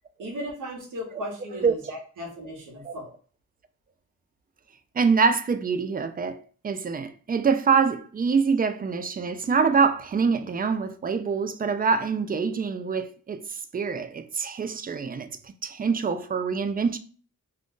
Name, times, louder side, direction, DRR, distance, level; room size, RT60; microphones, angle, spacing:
voice 1, 0.2-3.1, equal, 90° right, 1.0 m, -36 dB
voice 2, 5.0-17.0, right 5 dB, 30° right, 0.4 m, -25 dB
2.5 x 2.3 x 3.6 m
cardioid pair, 60°, 31 cm